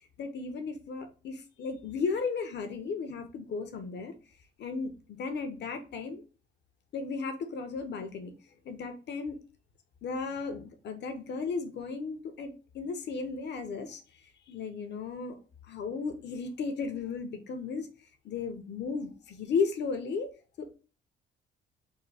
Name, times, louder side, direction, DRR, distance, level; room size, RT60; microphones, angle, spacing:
voice 1, 0.2-4.1 4.6-6.2 6.9-8.3 8.6-9.4 10.0-14.0 14.5-15.4 15.7-17.9 18.2-20.3 20.6-20.7, left 4 dB, 60° left, 6 dB, 0.8 m, -35 dB
3.6 x 2.2 x 3.3 m, 0.35 s
cardioid pair, 90°, 20 cm